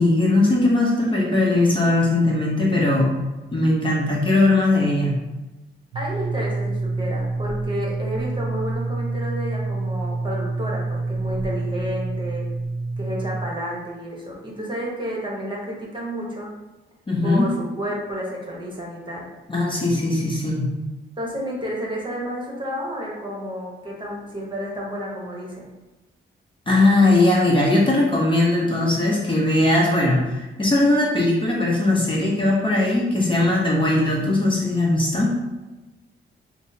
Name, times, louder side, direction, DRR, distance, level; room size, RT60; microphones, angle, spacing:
voice 1, 0.0-3.1 3.5-5.1 17.1-17.5 19.5-20.7 26.7-35.4, left 2 dB, 25° left, -4 dB, 0.7 m, -19 dB
voice 2, 5.9-12.5 13.0-16.5 17.2-19.3 21.2-25.7, equal, 25° right, -3 dB, 1.0 m, -31 dB
sound 1, 5.9-13.4, right 3 dB, 80° right, 0.5 m, -27 dB
6.0 x 2.0 x 2.7 m, 1.1 s
cardioid pair, 115°, 20 cm